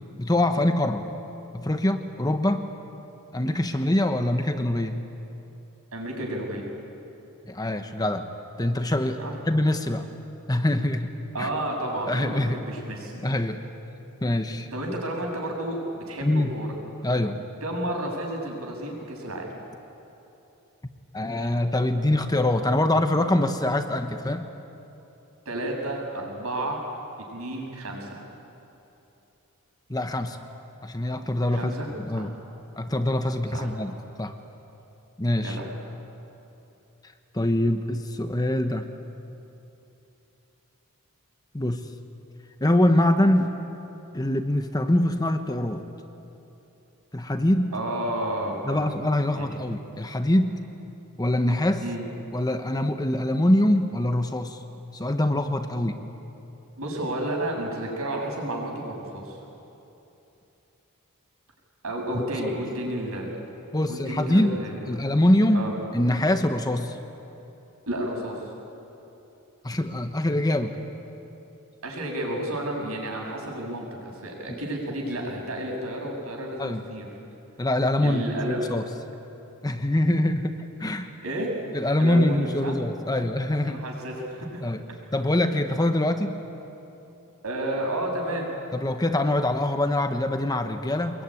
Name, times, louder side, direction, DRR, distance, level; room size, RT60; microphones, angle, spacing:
voice 1, 0.2-1.1 1.5-2.6 3.3-5.0 7.4-8.3 8.6-9.2 9.5-10.1 10.5-11.1 11.4-11.5 12.1-12.6 13.2-13.6 14.2-14.7 16.2-16.5 17.0-17.4 21.1-24.5 29.9-30.4 30.8-32.3 32.8-34.3 35.2-35.6 37.3-38.9 41.5-41.8 42.6-43.6 44.1-45.8 47.1-47.7 48.7-50.6 51.2-51.8 52.3-54.6 54.9-56.0 62.1-62.2 63.7-64.6 64.9-67.0 69.6-70.7 74.5-74.6 76.6-76.8 77.6-78.8 79.6-81.1 81.7-83.8 84.6-84.8 85.1-86.3 88.7-91.2, left 1 dB, 15° left, 7 dB, 1.1 m, -24 dB
voice 2, 5.9-6.7 9.2-9.3 11.3-13.1 14.7-16.7 17.6-19.5 25.5-26.8 27.3-28.2 31.5-31.9 32.1-32.3 33.5-33.7 35.4-35.7 47.7-48.9 49.3-49.5 51.8-52.0 56.8-59.4 61.8-63.3 63.9-64.8 65.5-65.7 67.9-68.4 71.8-77.1 78.0-78.6 81.2-81.5 82.0-82.8 83.2-83.3 83.7-84.7 86.0-86.1 87.4-88.5, right 1 dB, 70° right, 0 dB, 6.9 m, -31 dB
24.5 x 21.5 x 9.9 m, 3.0 s
head